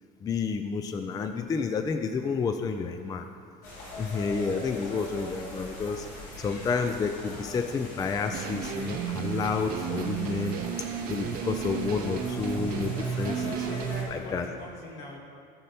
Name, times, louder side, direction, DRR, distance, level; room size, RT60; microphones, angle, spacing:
voice 1, 0.2-3.3 4.0-6.1 6.4-13.3 14.1-14.5, left 5 dB, 20° left, 7 dB, 0.4 m, -30 dB
sound 1, 3.6-14.0, left 1 dB, 90° left, 2.7 m, -42 dB
sound 2, 8.3-14.1, right 8 dB, 55° right, 0.7 m, -33 dB
voice 2, 13.2-15.2, left 1 dB, 70° left, -2 dB, 2.4 m, -40 dB
15.5 x 5.4 x 4.3 m, 2.3 s
cardioid pair, 135°, 19 cm